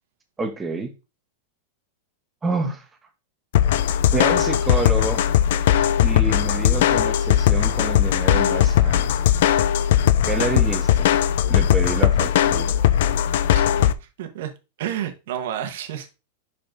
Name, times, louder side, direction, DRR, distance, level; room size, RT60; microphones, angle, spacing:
voice 1, 0.4-0.9 2.4-2.8 4.1-5.2 6.0-9.1 10.2-11.1 11.5-12.8, right 3 dB, 10° right, 1.0 m, -28 dB
sound 1, 3.5-13.9, left 10 dB, 65° left, 0.5 m, -19 dB
voice 2, 13.5-14.5 14.8-16.1, right 10 dB, 65° right, 1.2 m, -31 dB
5.9 x 5.2 x 3.8 m
supercardioid pair, 165°, 0 cm